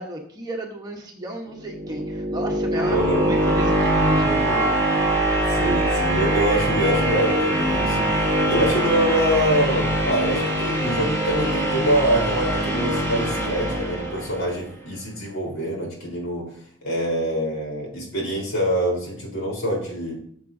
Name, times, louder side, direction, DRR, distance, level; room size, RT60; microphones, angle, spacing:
voice 1, 0.0-4.7, right 1 dB, 20° right, 1 dB, 1.1 m, -32 dB
sound 1, 1.6-14.6, right 1 dB, 15° left, 2.2 m, -23 dB
voice 2, 2.9-3.3 5.5-16.5 16.8-20.2, right 1 dB, 70° left, -2 dB, 3.8 m, -25 dB
13.5 x 7.1 x 2.7 m, 0.64 s
head